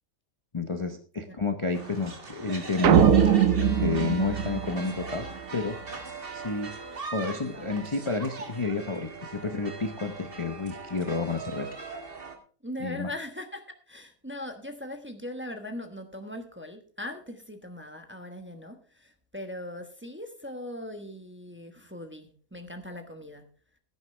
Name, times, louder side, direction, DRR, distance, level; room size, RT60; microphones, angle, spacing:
voice 1, 0.5-3.1 3.7-5.3 5.5-5.8 6.3-6.7 7.1-11.7 12.8-13.1, left 4 dB, 25° left, 6 dB, 0.8 m, -30 dB
voice 2, 1.6-2.1 12.6-23.5, left 1 dB, 10° right, 5 dB, 1.0 m, -40 dB
sound 1, 1.7-12.4, right 4 dB, 40° right, 1.8 m, -40 dB
sound 2, 2.8-5.3, right 9 dB, 75° right, 1.2 m, -21 dB
16.0 x 9.8 x 3.3 m, 0.42 s
omnidirectional pair, 1.4 m